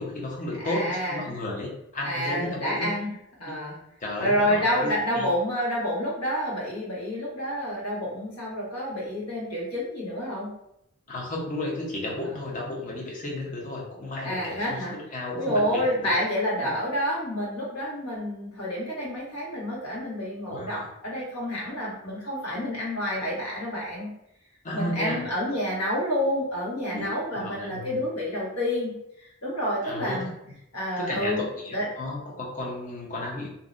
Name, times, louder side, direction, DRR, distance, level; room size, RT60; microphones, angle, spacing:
voice 1, 0.0-2.9 4.0-5.3 11.1-16.1 16.6-16.7 20.5-20.9 24.6-25.2 26.9-27.1 27.4-28.0 29.8-30.3 31.0-33.5, left 1 dB, 35° left, -2 dB, 0.6 m, -33 dB
voice 2, 0.6-1.3 2.0-3.1 3.4-3.8 4.2-10.5 14.2-14.9 15.3-24.1 24.7-28.9 29.4-30.3 30.7-31.4 31.7-31.9, equal, 80° left, -6 dB, 1.1 m, -28 dB
2.6 x 2.1 x 2.4 m, 0.79 s
head